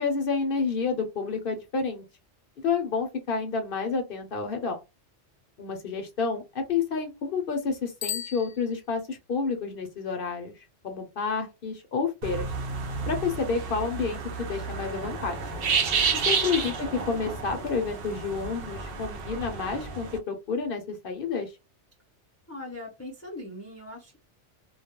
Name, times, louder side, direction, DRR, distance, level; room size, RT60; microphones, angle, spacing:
voice 1, 0.0-2.0 2.6-4.8 5.6-10.5 10.8-12.5 13.1-15.4 16.3-21.5, left 5 dB, 60° left, 0.7 m, -29 dB
Bicycle bell, 8.0-9.3, left 10 dB, 85° left, 0.9 m, -37 dB
sound 1, 12.2-20.2, right 5 dB, 60° right, 0.7 m, -31 dB
voice 2, 15.9-16.3 22.5-24.2, left 1 dB, 15° left, 0.6 m, -41 dB
2.3 x 2.1 x 2.8 m
omnidirectional pair, 1.2 m